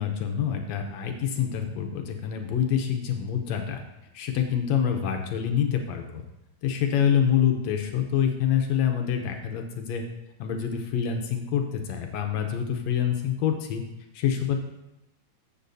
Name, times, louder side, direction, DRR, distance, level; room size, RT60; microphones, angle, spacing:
voice 1, 0.0-3.8 4.1-6.2 6.6-10.0 10.4-13.8 14.1-14.6, left 8 dB, 75° left, 4 dB, 1.9 m, -26 dB
13.5 x 7.3 x 2.6 m, 0.94 s
omnidirectional pair, 3.4 m